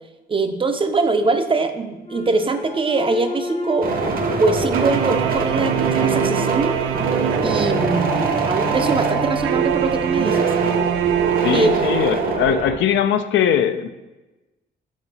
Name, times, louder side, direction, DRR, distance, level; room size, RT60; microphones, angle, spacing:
voice 1, 0.3-3.9 4.4-6.8 7.4-10.5 11.5-11.8, right 3 dB, 25° right, 7 dB, 0.5 m, -22 dB
sound 1, 2.0-6.4, left 2 dB, 30° left, 0.7 m, -33 dB
sound 2, 3.8-12.8, right 3 dB, 45° right, 0.9 m, -24 dB
sound 3, 4.7-12.5, right 9 dB, 85° right, 0.4 m, -24 dB
voice 2, 11.4-13.9, left 9 dB, 70° left, 9 dB, 0.5 m, -20 dB
6.1 x 3.9 x 4.1 m, 1.1 s
cardioid pair, 90°, 20 cm